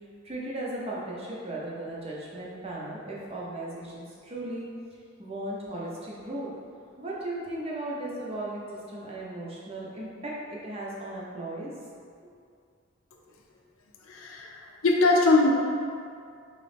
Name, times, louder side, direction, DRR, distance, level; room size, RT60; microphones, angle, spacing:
voice 1, 0.2-4.7 5.2-6.5 7.0-11.7 12.2-12.3, right 1 dB, 30° right, -5 dB, 0.6 m, -36 dB
voice 2, 14.0-15.5, left 2 dB, 85° left, 0 dB, 0.5 m, -22 dB
3.9 x 3.0 x 3.3 m, 2.3 s
head